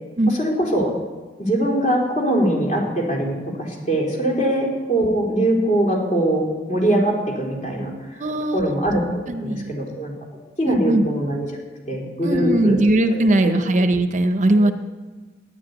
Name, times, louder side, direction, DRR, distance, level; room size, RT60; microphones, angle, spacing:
voice 1, 0.3-0.9 1.4-8.2 8.5-10.1 10.6-11.5 11.9-12.8 13.1-13.5 13.8-13.9 14.5-14.7, right 1 dB, 40° left, -1 dB, 3.8 m, -22 dB
voice 2, 8.2-8.8 9.3-9.8 10.6-11.1 12.2-14.7, right 1 dB, 40° right, 8 dB, 0.7 m, -19 dB
12.5 x 10.0 x 9.5 m, 1.3 s
head